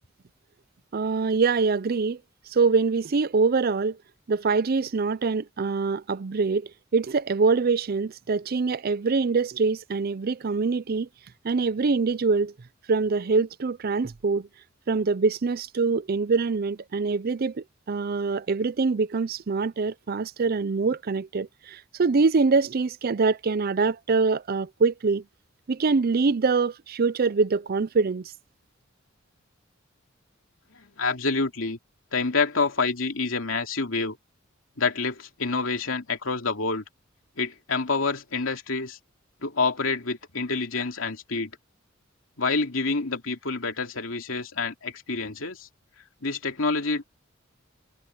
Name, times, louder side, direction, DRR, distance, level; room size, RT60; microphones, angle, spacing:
voice 1, 0.9-2.2 2.5-4.0 4.3-11.1 11.4-12.5 12.9-14.5 14.9-25.2 25.7-28.3, right 4 dB, 50° right, 0.5 m, -24 dB
voice 2, 30.8-31.8 32.1-34.2 34.8-36.8 37.4-39.0 39.4-41.5 42.4-45.7 46.2-47.0, left 4 dB, 85° left, 2.6 m, -27 dB
head